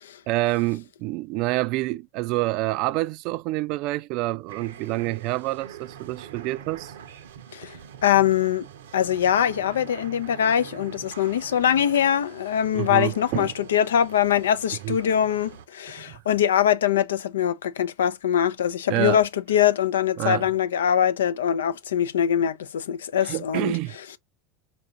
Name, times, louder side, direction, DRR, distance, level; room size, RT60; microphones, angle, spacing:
voice 1, 0.3-6.9 12.7-13.5 14.8-15.0 16.0-16.2 18.9-19.2 20.2-20.5 23.2-24.2, right 19 dB, 60° right, 0.3 m, -27 dB
sound 1, 4.5-15.7, right 8 dB, 80° right, 0.7 m, -44 dB
voice 2, 8.0-8.6 8.9-23.7, left 9 dB, 85° left, 0.4 m, -23 dB
4.6 x 2.6 x 3.7 m
hypercardioid pair, 95°, 0 cm